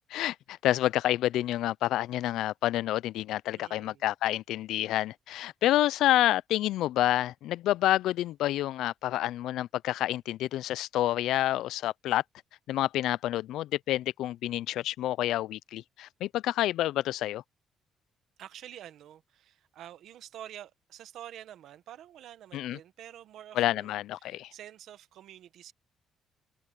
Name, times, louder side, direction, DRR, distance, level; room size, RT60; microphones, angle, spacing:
voice 1, 0.1-12.2 12.7-17.4 22.5-22.8 23.6-24.5, left 14 dB, 85° left, 0.3 m, -28 dB
voice 2, 3.5-4.1 18.4-25.7, right 11 dB, 70° right, 1.2 m, -48 dB
cardioid pair, 160°, 0 cm